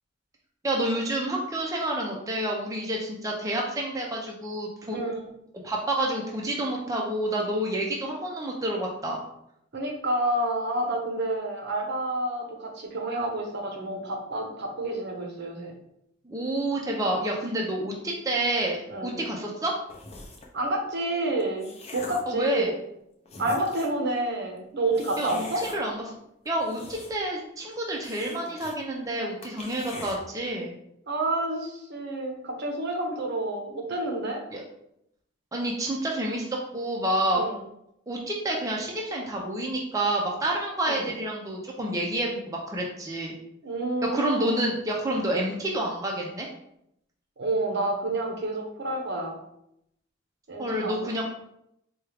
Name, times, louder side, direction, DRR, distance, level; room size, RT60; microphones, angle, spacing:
voice 1, 0.6-5.0 5.6-9.2 16.2-19.7 22.3-22.7 25.2-25.4 25.7-26.0 26.5-30.7 34.5-34.6 35.5-37.4 38.1-43.3 44.1-46.5 50.6-51.2, right 1 dB, 15° right, -2 dB, 0.5 m, -29 dB
voice 2, 4.9-5.3 9.7-15.7 18.9-19.2 20.5-22.8 23.4-25.6 31.1-34.4 37.3-37.6 40.9-41.1 43.6-44.6 47.4-49.4 50.5-51.2, right 1 dB, 60° right, 2 dB, 0.8 m, -29 dB
sound 1, 19.9-20.6 21.2-22.4 22.9-23.0 23.3-24.0 24.9-25.8 26.5-27.4 27.6-27.7 28.0-28.8 29.1-29.2 29.4-30.2, left 2 dB, 35° left, 0.6 m, -42 dB
4.4 x 2.3 x 3.3 m, 0.77 s
head